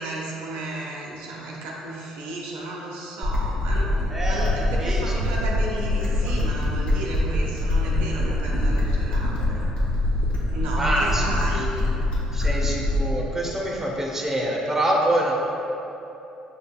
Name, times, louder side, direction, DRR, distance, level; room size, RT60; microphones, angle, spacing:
voice 1, 0.0-3.9 4.3-9.7 10.5-12.0, right 2 dB, 80° right, -3 dB, 0.6 m, -33 dB
sound 1, 3.2-13.2, left 1 dB, 45° left, 1.2 m, -24 dB
voice 2, 4.1-4.5 4.8-5.3 10.8-11.2 12.3-15.3, right 1 dB, 15° right, -2 dB, 0.8 m, -25 dB
6.6 x 2.7 x 2.3 m, 2.9 s
supercardioid pair, 70°, 2 cm